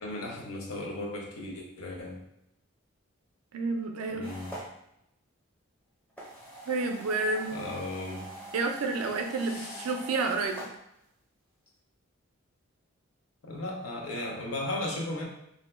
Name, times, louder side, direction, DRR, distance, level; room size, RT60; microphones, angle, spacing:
voice 1, 0.0-2.2 4.1-4.5 7.5-8.3 9.4-9.9 13.4-15.2, left 1 dB, 80° left, -1 dB, 0.6 m, -36 dB
voice 2, 3.5-4.3 6.7-7.6 8.5-10.6, right 3 dB, 90° right, 4 dB, 0.4 m, -30 dB
sound 1, 4.2-4.7 6.1-10.7, equal, 5° left, 0.5 m, -44 dB
2.6 x 2.1 x 3.1 m, 0.79 s
head